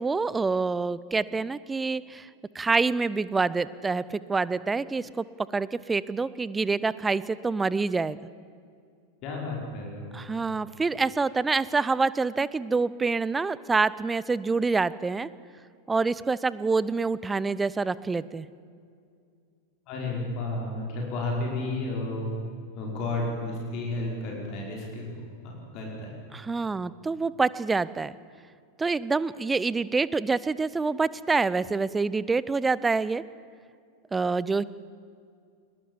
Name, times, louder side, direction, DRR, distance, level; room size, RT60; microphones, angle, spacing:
voice 1, 0.0-2.3 2.5-5.2 5.5-8.2 10.1-15.3 15.9-18.5 26.3-28.2 28.8-33.2 34.1-34.6, right 4 dB, 10° right, 18 dB, 0.6 m, -26 dB
voice 2, 9.2-10.1 19.9-22.3 22.8-25.1 25.4-26.1, left 2 dB, 40° left, -1 dB, 5.2 m, -32 dB
22.0 x 21.5 x 7.3 m, 2.3 s
figure-of-eight pair, 90°, 0 cm